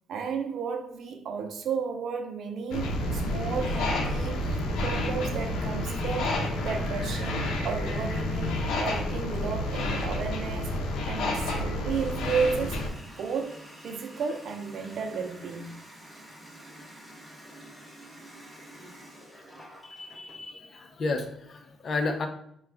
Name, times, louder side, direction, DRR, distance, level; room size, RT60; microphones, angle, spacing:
voice 1, 0.1-10.8 11.1-12.9 13.2-15.8, right 5 dB, 65° right, 0.6 m, -33 dB
sound 1, 2.7-12.9, left 1 dB, 85° left, 0.7 m, -29 dB
Water tap faucet, 11.9-20.4, right 1 dB, ahead, 1.1 m, -48 dB
voice 2, 19.8-22.3, left 3 dB, 50° left, 0.6 m, -32 dB
4.8 x 2.3 x 3.4 m
cardioid pair, 90°, 0 cm